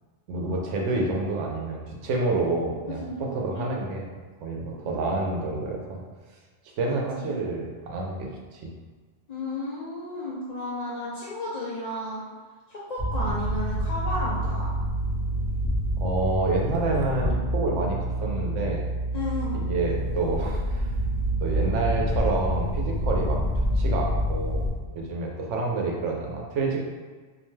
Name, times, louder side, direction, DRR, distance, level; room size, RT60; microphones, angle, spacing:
voice 1, 0.3-4.1 4.4-6.0 6.8-8.7 16.0-18.8 19.5-20.9 21.4-23.4 23.8-26.8, right 3 dB, 90° right, -1 dB, 0.9 m, -28 dB
voice 2, 2.9-3.2 3.5-3.7 7.2-7.4 9.3-12.2 12.7-14.7 19.1-19.7, left 1 dB, 65° left, -8 dB, 0.4 m, -33 dB
sound 1, 13.0-24.7, equal, 20° left, 0.6 m, -27 dB
2.6 x 2.1 x 3.1 m, 1.4 s
omnidirectional pair, 1.2 m